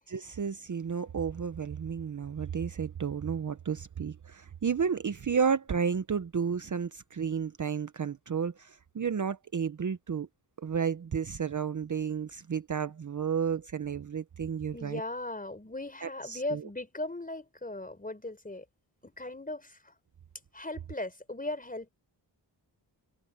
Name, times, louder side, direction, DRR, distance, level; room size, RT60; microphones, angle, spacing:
voice 1, 0.1-10.3 10.6-15.0 16.0-16.7, right 6 dB, 45° right, 0.8 m, -32 dB
voice 2, 14.7-18.6 19.0-19.9 20.5-21.9, left 2 dB, 20° left, 4.7 m, -38 dB
open air
wide cardioid pair, 115°, 43 cm